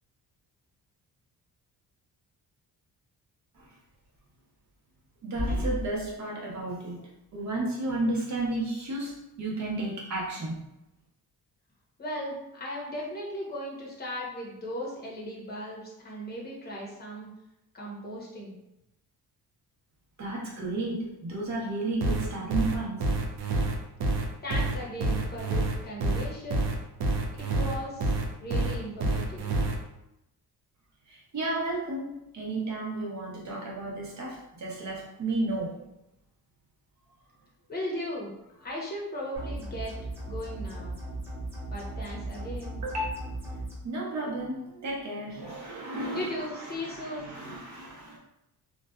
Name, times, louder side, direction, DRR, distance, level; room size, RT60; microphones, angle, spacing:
voice 1, 5.2-7.0 7.3-10.6 20.2-23.1 31.1-35.7 42.8-43.3 43.8-48.2, right 2 dB, 50° right, -3 dB, 0.9 m, -32 dB
voice 2, 12.0-17.3 17.7-18.6 24.4-26.6 27.3-29.5 37.7-39.9 40.2-41.0 41.7-42.8 46.1-47.3, equal, 25° left, -3 dB, 0.8 m, -37 dB
sound 1, 22.0-29.8, right 2 dB, 90° right, 0.5 m, -27 dB
sound 2, 39.4-43.7, right 2 dB, 5° right, 0.9 m, -37 dB
2.5 x 2.3 x 2.3 m, 0.88 s
cardioid pair, 115°, 38 cm